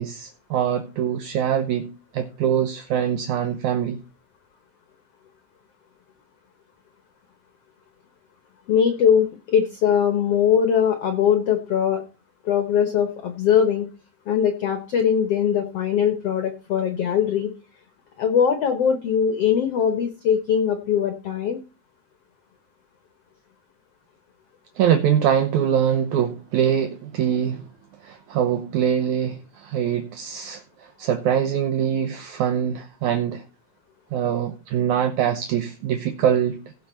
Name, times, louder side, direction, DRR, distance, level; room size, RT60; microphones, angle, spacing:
voice 1, 0.0-4.0 24.8-27.7 28.0-33.4 34.1-36.6, right 9 dB, 75° right, 1.9 m, -23 dB
voice 2, 8.7-12.0 12.4-13.9 14.3-17.5 18.2-21.6, left 8 dB, 70° left, 1.4 m, -21 dB
17.0 x 6.0 x 4.3 m
omnidirectional pair, 4.2 m